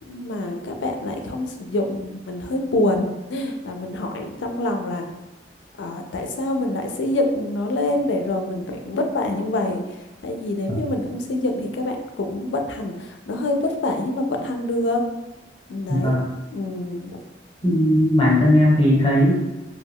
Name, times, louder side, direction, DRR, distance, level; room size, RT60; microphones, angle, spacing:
voice 1, 0.0-5.0 5.8-9.8 10.2-15.0 15.7-16.2 16.5-17.2, left 1 dB, 80° left, 4 dB, 0.4 m, -26 dB
voice 2, 15.9-16.2 17.6-19.3, left 1 dB, 25° left, -4 dB, 0.7 m, -17 dB
2.2 x 2.2 x 3.5 m, 1.0 s
head